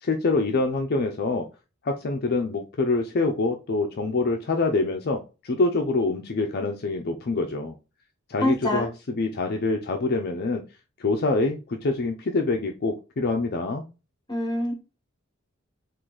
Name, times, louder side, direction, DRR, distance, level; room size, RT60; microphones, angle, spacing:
voice 1, 0.0-1.5 1.8-7.7 8.3-10.6 11.0-13.9, left 3 dB, 50° left, 3 dB, 0.5 m, -25 dB
voice 2, 8.4-8.9 14.3-14.7, left 1 dB, 20° left, 3 dB, 1.3 m, -25 dB
3.8 x 2.5 x 4.7 m, 0.30 s
head